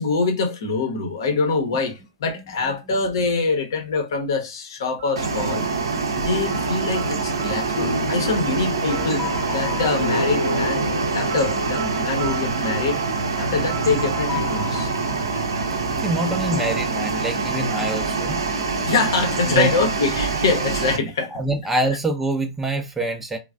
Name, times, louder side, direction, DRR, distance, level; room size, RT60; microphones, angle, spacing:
voice 1, 0.0-5.7 6.2-9.2 9.5-10.9 11.1-13.0 13.4-14.9 18.9-21.3, left 4 dB, 60° left, 0.7 m, -24 dB
voice 2, 2.3-3.0 15.7-18.4 19.5-19.7 21.3-23.4, right 1 dB, 10° right, 0.5 m, -26 dB
sound 1, 5.0-16.8, left 2 dB, 35° left, 1.0 m, -38 dB
sound 2, 5.2-21.0, right 4 dB, 75° right, 0.5 m, -25 dB
sound 3, 7.8-13.8, left 1 dB, 80° left, 0.3 m, -30 dB
3.1 x 2.1 x 2.2 m
figure-of-eight pair, 105°, 2 cm